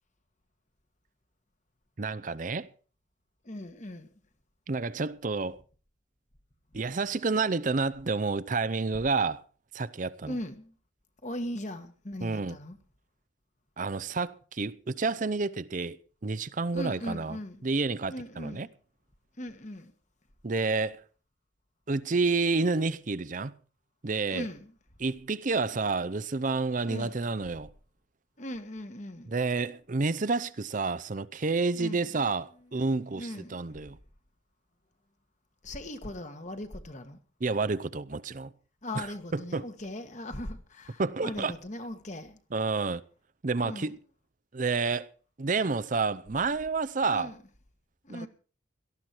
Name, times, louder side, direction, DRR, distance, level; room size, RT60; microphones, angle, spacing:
voice 1, 2.0-2.7 4.7-5.6 6.7-9.4 9.7-10.3 12.2-12.6 13.8-16.0 16.2-17.4 17.6-18.7 20.4-21.0 21.9-23.5 24.0-24.4 25.0-27.7 29.3-34.0 37.4-38.5 39.0-39.1 39.3-39.6 41.0-41.5 42.5-43.0 43.4-43.9 44.5-45.1 45.4-47.3 48.1-48.3, right 4 dB, 40° right, 0.6 m, -29 dB
voice 2, 3.4-4.1 10.3-10.7 11.2-12.8 16.7-17.6 18.1-18.7 19.4-19.9 24.3-24.7 26.8-27.2 28.4-29.3 31.7-32.2 32.7-32.8 33.1-33.6 35.6-37.2 38.8-42.4 43.6-43.9 47.1-47.4 48.0-48.3, left 1 dB, 40° left, 1.6 m, -39 dB
18.0 x 13.5 x 4.5 m
head